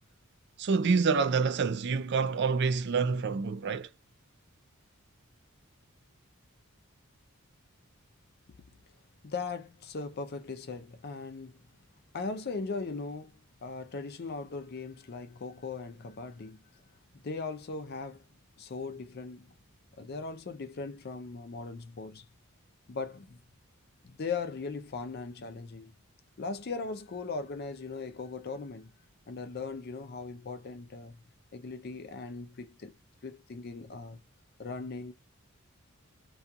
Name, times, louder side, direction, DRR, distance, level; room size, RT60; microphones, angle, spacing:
voice 1, 0.6-3.9, right 5 dB, 50° right, 0.4 m, -27 dB
voice 2, 9.2-11.6 12.1-16.6 17.2-18.3 18.6-19.5 20.0-22.3 22.9-23.4 24.0-25.9 26.4-28.9 29.3-31.2 31.5-33.0 33.2-34.2 34.6-35.1, left 4 dB, 45° left, 0.5 m, -39 dB
2.4 x 2.3 x 2.7 m
head